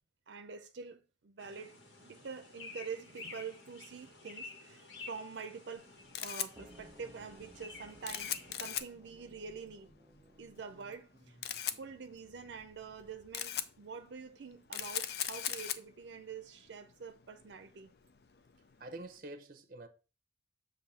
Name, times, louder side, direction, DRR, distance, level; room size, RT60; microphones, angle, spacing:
voice 1, 0.3-1.7 2.0-5.9 6.2-9.9 10.4-11.4 11.8-17.9, right 5 dB, 85° right, 0.5 m, -46 dB
sound 1, 1.4-8.8, left 4 dB, 85° left, 1.5 m, -51 dB
Camera, 5.8-19.1, left 10 dB, 60° left, 0.4 m, -42 dB
sound 2, 6.6-13.5, right 1 dB, 20° right, 0.4 m, -60 dB
voice 2, 18.8-19.9, right 2 dB, 50° right, 0.7 m, -46 dB
7.1 x 2.7 x 5.4 m
head